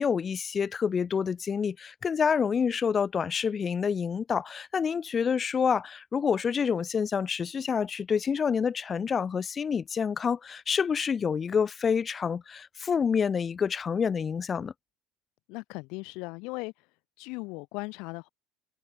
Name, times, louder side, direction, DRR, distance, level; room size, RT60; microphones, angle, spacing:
voice 1, 0.0-14.7, left 6 dB, 35° left, 1.8 m, -28 dB
voice 2, 15.5-16.7 17.2-18.3, left 27 dB, 65° left, 1.0 m, -37 dB
hypercardioid pair, 65°, 0 cm